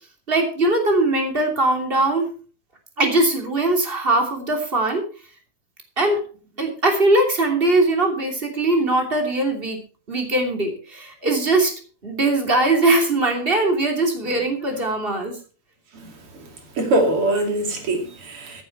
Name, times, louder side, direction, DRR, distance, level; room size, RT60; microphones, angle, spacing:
voice 1, 0.3-2.3 3.0-5.0 6.0-6.2 6.6-9.8 10.1-11.7 12.0-15.4, right 2 dB, 15° right, 2.7 m, -20 dB
voice 2, 16.8-18.6, right 1 dB, 45° right, 3.1 m, -22 dB
14.5 x 9.5 x 4.6 m
omnidirectional pair, 4.0 m